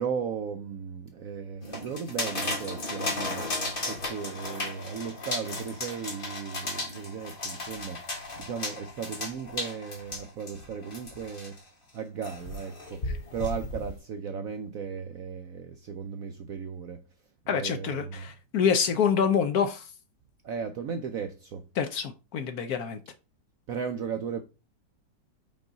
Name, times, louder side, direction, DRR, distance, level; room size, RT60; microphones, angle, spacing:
voice 1, 0.0-3.5 3.9-8.0 8.4-11.6 11.9-17.0 17.4-18.2 20.4-21.7 23.7-24.4, right 6 dB, 70° right, 0.8 m, -36 dB
sound 1, 1.6-11.6 12.2-14.0, left 2 dB, 30° left, 1.5 m, -35 dB
voice 2, 17.5-19.9 21.8-23.0, left 7 dB, 65° left, 1.0 m, -26 dB
5.3 x 5.0 x 3.9 m
omnidirectional pair, 2.0 m